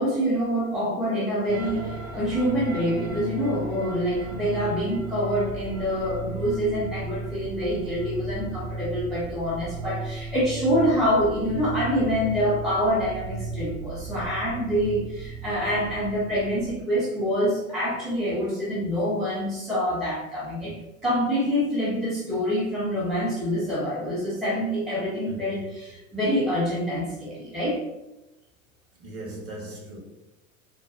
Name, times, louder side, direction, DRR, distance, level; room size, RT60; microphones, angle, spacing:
voice 1, 0.0-27.8, equal, ahead, 0.4 m, -26 dB
sound 1, 1.5-16.7, right 3 dB, 65° right, 0.8 m, -36 dB
voice 2, 29.0-30.0, right 1 dB, 35° right, 1.0 m, -38 dB
3.8 x 2.0 x 2.3 m
hypercardioid pair, 95°, 42 cm